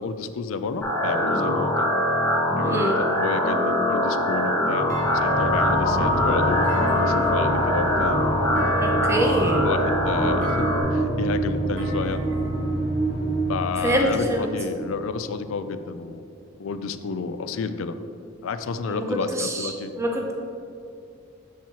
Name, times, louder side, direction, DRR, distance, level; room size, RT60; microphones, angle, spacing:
voice 1, 0.0-1.9 2.6-8.4 9.6-12.2 13.5-16.3 16.6-18.0 18.4-19.9, left 5 dB, 75° left, 11 dB, 0.4 m, -30 dB
sound 1, 0.8-10.8, equal, 10° left, 1.0 m, -23 dB
voice 2, 2.6-3.0 8.8-9.6 13.8-14.5 18.9-19.0 19.3-20.3, equal, 15° right, 1 dB, 0.6 m, -25 dB
sound 2, 4.7-15.6, right 1 dB, 50° left, 1.1 m, -27 dB
Thump thud, 4.9-5.8 6.6-7.6 8.5-9.3 10.4-11.1 11.8-12.8, left 1 dB, 40° right, 1.1 m, -38 dB
7.3 x 7.1 x 2.9 m, 2.5 s
head